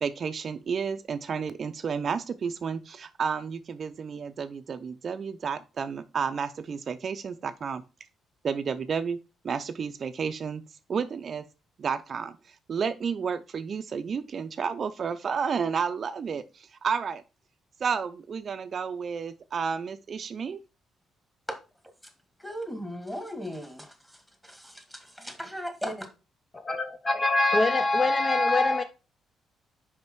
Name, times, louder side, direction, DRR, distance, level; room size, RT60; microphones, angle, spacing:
voice 1, 0.0-7.8 8.4-9.2 9.4-10.6 10.9-11.4 11.8-12.4 12.7-17.2 17.8-20.6, right 6 dB, 50° right, 0.5 m, -31 dB
voice 2, 22.4-26.1, equal, 5° left, 1.9 m, -37 dB
voice 3, 26.6-28.8, left 2 dB, 25° left, 0.5 m, -23 dB
5.4 x 5.0 x 4.5 m
cardioid pair, 90°, 0 cm